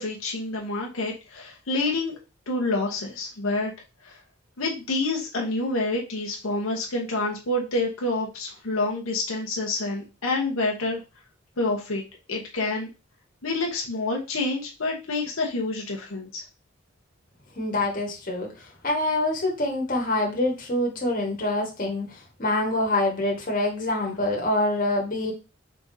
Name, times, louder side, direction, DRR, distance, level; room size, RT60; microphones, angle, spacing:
voice 1, 0.0-2.1 2.5-3.7 4.0-4.2 4.6-11.0 11.6-12.0 12.3-12.9 13.4-16.4, left 2 dB, 85° left, -1 dB, 0.9 m, -28 dB
voice 2, 17.5-25.3, left 1 dB, 40° left, -1 dB, 1.4 m, -26 dB
4.3 x 3.6 x 2.7 m, 0.30 s
head